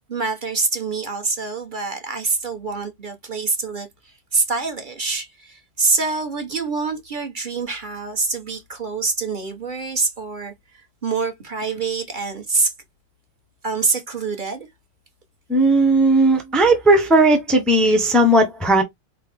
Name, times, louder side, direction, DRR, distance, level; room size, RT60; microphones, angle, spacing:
voice 1, 0.1-3.9 4.3-12.7 13.6-14.7, right 4 dB, 40° right, 1.2 m, -25 dB
voice 2, 15.5-18.8, right 2 dB, ahead, 0.7 m, -16 dB
4.1 x 3.7 x 3.5 m
omnidirectional pair, 1.3 m